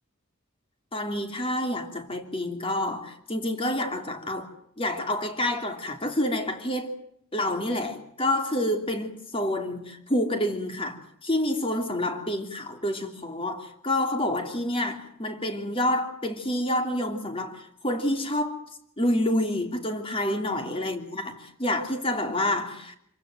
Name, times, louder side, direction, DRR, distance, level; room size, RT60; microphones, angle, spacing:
voice 1, 0.9-4.5 4.8-6.9 7.3-18.6 19.0-23.0, left 1 dB, 25° left, 2.9 m, -28 dB
27.5 x 15.5 x 9.2 m
head